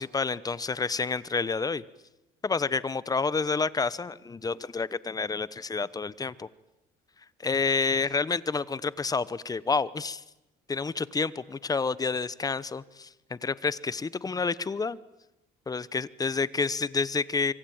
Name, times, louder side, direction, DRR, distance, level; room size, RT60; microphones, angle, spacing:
voice 1, 0.0-1.8 2.4-6.5 7.4-10.2 10.7-15.0 15.7-17.5, left 4 dB, 20° left, 17 dB, 1.0 m, -29 dB
25.0 x 24.5 x 8.8 m, 0.97 s
cardioid pair, 110°, 17 cm